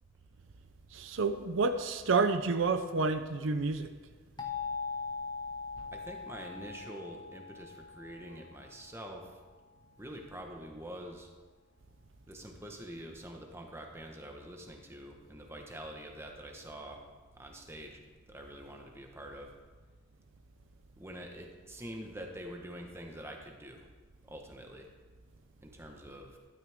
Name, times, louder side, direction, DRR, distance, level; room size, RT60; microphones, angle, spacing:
voice 1, 0.9-3.9, right 4 dB, 70° right, 9 dB, 0.6 m, -29 dB
sound 1, 4.4-9.1, left 5 dB, 20° left, 1.1 m, -41 dB
voice 2, 5.9-9.3 10.0-11.3 12.3-17.0 17.3-18.0 18.3-19.5 21.0-23.9 24.2-24.9 25.6-26.4, right 1 dB, 10° right, 2 dB, 1.2 m, -46 dB
13.0 x 12.0 x 3.6 m, 1.4 s
head